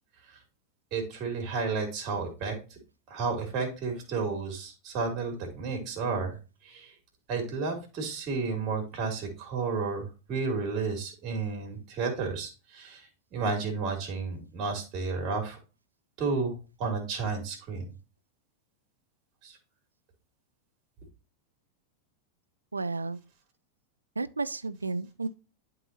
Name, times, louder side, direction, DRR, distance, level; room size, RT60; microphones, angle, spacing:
voice 1, 0.9-2.8 3.1-6.4 6.6-6.9 7.3-15.6 16.2-17.8 19.4-19.6, right 4 dB, 35° right, 2.7 m, -32 dB
voice 2, 22.7-23.2 24.2-25.3, right 3 dB, 80° right, 0.4 m, -32 dB
11.5 x 3.9 x 2.8 m
figure-of-eight pair, 90°, 0 cm